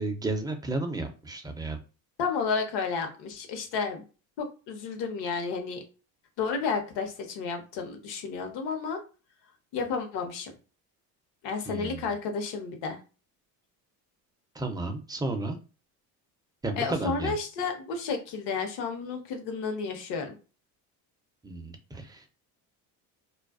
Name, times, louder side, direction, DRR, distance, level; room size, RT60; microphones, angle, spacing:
voice 1, 0.0-1.8 11.7-12.0 14.6-15.6 16.6-17.3 21.4-22.3, right 2 dB, 10° right, 5 dB, 0.4 m, -32 dB
voice 2, 2.2-4.0 4.4-5.8 6.4-9.0 9.7-10.5 11.4-13.0 16.8-20.4, left 5 dB, 65° left, 4 dB, 0.9 m, -31 dB
2.4 x 2.2 x 2.3 m, 0.34 s
supercardioid pair, 90°, 44 cm